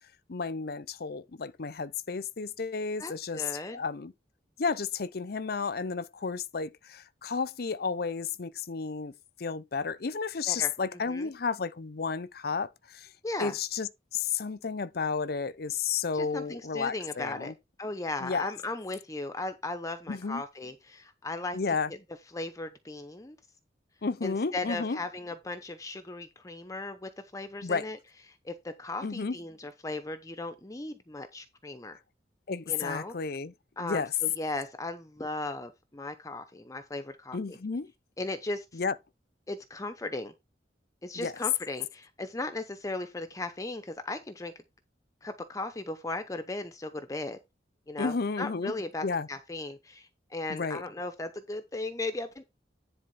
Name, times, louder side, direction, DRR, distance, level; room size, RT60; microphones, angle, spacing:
voice 1, 0.3-4.1 4.6-9.1 9.4-13.1 13.4-17.5 18.2-18.5 20.1-20.4 21.5-21.9 24.0-25.0 27.6-27.9 29.0-29.4 32.5-34.1 37.3-37.9 38.7-38.9 41.1-41.4 48.0-48.7 49.0-49.3 50.5-50.8, left 5 dB, 60° left, 0.6 m, -32 dB
voice 2, 3.0-3.8 10.5-10.7 11.1-11.3 13.2-13.6 16.1-17.5 17.8-21.6 22.3-23.4 24.2-28.0 28.4-32.0 32.7-33.1 33.8-37.6 38.2-38.8 39.5-40.3 41.0-44.5 45.2-47.4 47.9-52.5, left 2 dB, 20° left, 0.7 m, -37 dB
10.5 x 4.1 x 5.5 m
head